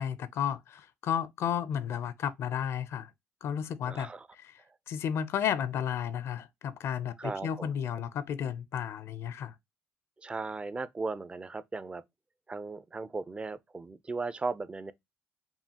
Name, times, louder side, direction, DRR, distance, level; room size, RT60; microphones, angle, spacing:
voice 1, 0.0-3.1 3.4-4.5 4.9-9.5, left 8 dB, 60° left, 0.5 m, -33 dB
voice 2, 3.8-4.3 4.7-4.8 7.2-7.7 10.2-12.0 12.5-14.9, right 3 dB, 20° right, 0.5 m, -37 dB
5.4 x 2.4 x 2.8 m
cardioid pair, 90°, 5 cm